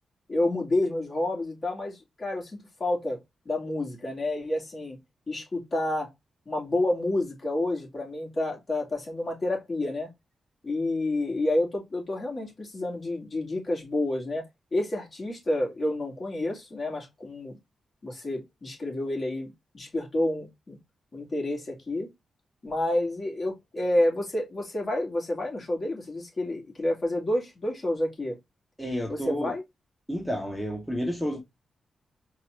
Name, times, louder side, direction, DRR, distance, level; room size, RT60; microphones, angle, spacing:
voice 1, 0.3-3.2 3.5-5.0 5.3-6.1 6.5-10.1 10.6-14.4 14.7-17.5 18.0-20.8 21.1-22.1 22.6-28.4 29.1-29.6, left 1 dB, 40° left, 2.2 m, -29 dB
voice 2, 28.8-29.5 30.1-31.4, equal, ahead, 0.9 m, -30 dB
4.6 x 2.5 x 3.1 m
cardioid pair, 105°, 0 cm